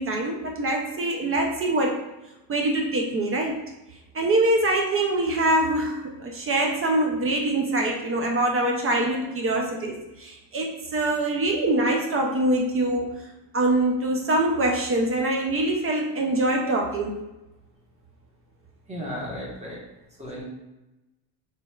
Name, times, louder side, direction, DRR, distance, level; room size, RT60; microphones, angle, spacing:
voice 1, 0.0-2.0 2.5-3.6 4.1-13.3 13.5-17.3, right 1 dB, 30° right, 1 dB, 0.4 m, -24 dB
voice 2, 18.9-19.8 20.2-20.4, equal, 15° right, -5 dB, 1.2 m, -34 dB
3.2 x 2.9 x 2.3 m, 0.99 s
supercardioid pair, 90°, 46 cm